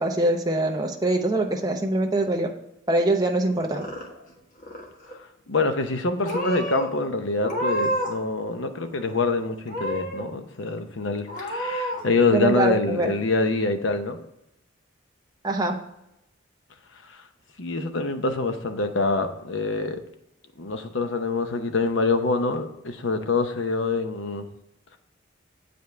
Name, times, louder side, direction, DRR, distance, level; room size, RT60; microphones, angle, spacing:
voice 1, 0.0-2.5 2.9-3.9 12.3-13.1 15.4-15.8, right 2 dB, 20° right, 2 dB, 0.7 m, -23 dB
Purr / Meow, 3.5-4.3 4.6-5.2 5.8-6.0 6.2-6.9 7.4-8.2 8.5-9.3 9.7-10.3 10.7-10.8 11.3-12.0, right 1 dB, 40° left, 1.4 m, -30 dB
voice 2, 5.5-14.2 17.1-17.2 17.6-20.0 20.6-24.5, left 3 dB, 70° left, 7 dB, 0.8 m, -25 dB
7.9 x 5.2 x 3.4 m, 0.86 s
head